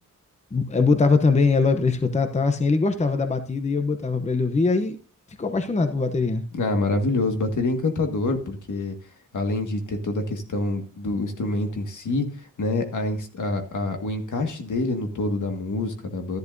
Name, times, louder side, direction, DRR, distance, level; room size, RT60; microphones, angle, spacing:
voice 1, 0.5-5.0 5.4-6.4, left 4 dB, 20° left, 8 dB, 0.7 m, -22 dB
voice 2, 6.5-9.0 9.3-12.3 12.6-16.4, left 2 dB, 70° left, 5 dB, 1.8 m, -26 dB
13.0 x 11.0 x 2.6 m, 0.39 s
wide cardioid pair, 165°, 31 cm